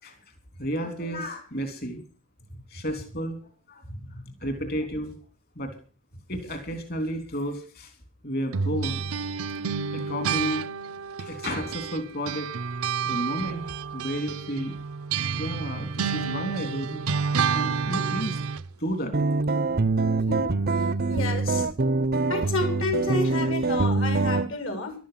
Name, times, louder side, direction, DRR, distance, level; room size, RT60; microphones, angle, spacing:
voice 1, 0.6-2.0 2.7-3.8 4.4-5.1 5.5-5.7 6.3-7.9 8.2-9.0 9.9-10.7 11.2-12.5 13.0-13.6 13.9-14.8 15.4-17.1 17.5-18.4 18.8-19.1, equal, 45° left, 7 dB, 3.3 m, -32 dB
voice 2, 3.9-4.5 20.3-21.7 22.3-24.9, left 3 dB, 60° left, 6 dB, 4.2 m, -31 dB
sound 1, 8.5-12.0 12.3-18.7, right 6 dB, 80° right, 0.8 m, -29 dB
sound 2, 19.1-24.5, right 3 dB, 45° right, 0.7 m, -24 dB
13.5 x 12.5 x 5.8 m, 0.38 s
head